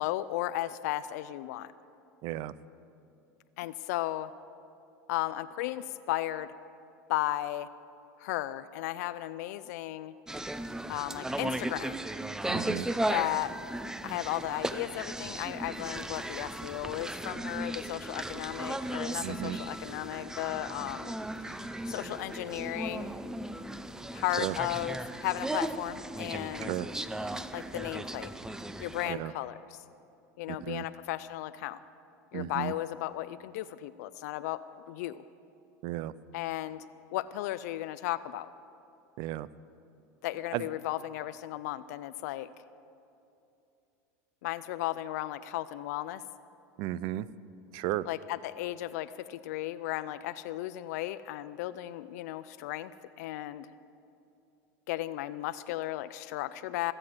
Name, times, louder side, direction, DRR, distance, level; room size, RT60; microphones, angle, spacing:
voice 1, 0.0-1.7 3.6-4.3 5.1-6.5 7.1-7.7 8.2-10.1 10.9-12.0 13.1-13.5 14.0-23.1 24.1-26.7 27.5-28.3 28.8-29.8 30.4-31.8 32.3-34.6 34.9-35.2 36.3-36.8 37.1-38.5 40.2-42.5 44.4-46.2 48.1-52.9 53.2-53.7 54.9-56.9, left 15 dB, 75° left, 14 dB, 0.4 m, -35 dB
voice 2, 2.2-2.5 12.5-12.9 19.2-19.6 24.4-24.6 26.6-26.9 29.1-29.3 30.5-30.8 32.3-32.7 35.8-36.1 39.2-39.5 40.5-40.7 46.8-47.3 47.7-48.0, right 15 dB, 60° right, 19 dB, 0.5 m, -34 dB
sound 1, 10.3-29.1, right 1 dB, 5° right, 0.5 m, -36 dB
17.5 x 7.8 x 7.7 m, 2.7 s
supercardioid pair, 105°, 9 cm